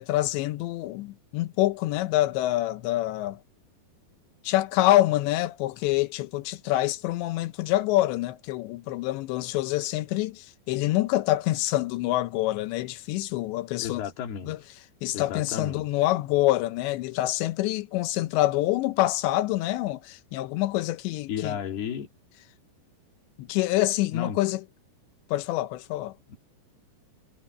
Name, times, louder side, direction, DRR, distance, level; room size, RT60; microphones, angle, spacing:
voice 1, 0.0-3.4 4.4-14.0 14.5-14.6 15.0-21.6 23.4-24.6 25.3-26.1, left 16 dB, 85° left, 3.1 m, -26 dB
voice 2, 13.8-14.6 15.1-15.9 21.3-22.1 24.1-24.4 26.3-26.4, left 8 dB, 65° left, 4.1 m, -33 dB
omnidirectional pair, 5.1 m